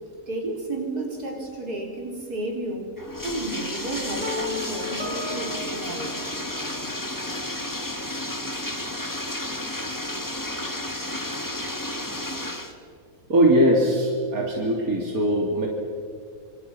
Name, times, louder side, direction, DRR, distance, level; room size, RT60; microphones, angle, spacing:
voice 1, 0.3-2.9 3.2-6.2, right 2 dB, 90° right, 0 dB, 4.8 m, -32 dB
Bathtub (filling or washing), 3.0-12.7, left 1 dB, 10° left, 1.8 m, -32 dB
sound 1, 4.2-7.2, left 2 dB, 25° right, 4.0 m, -35 dB
voice 2, 13.3-15.7, equal, 70° right, -1 dB, 3.6 m, -20 dB
27.0 x 27.0 x 6.0 m, 2.2 s
omnidirectional pair, 1.6 m